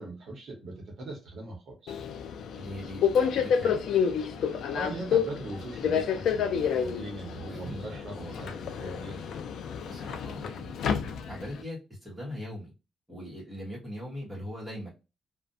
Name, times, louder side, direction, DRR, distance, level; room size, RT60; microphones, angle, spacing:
voice 1, 0.0-2.0 4.7-9.2, right 2 dB, 50° right, 1 dB, 0.8 m, -40 dB
Subway metro underground, 1.9-11.6, left 7 dB, 65° left, 0.3 m, -29 dB
voice 2, 2.5-3.8 7.5-8.4 9.8-11.0 11.3-12.7 13.1-14.9, equal, 5° right, -6 dB, 1.0 m, -40 dB
2.4 x 2.1 x 2.5 m, 0.28 s
cardioid pair, 175°, 0 cm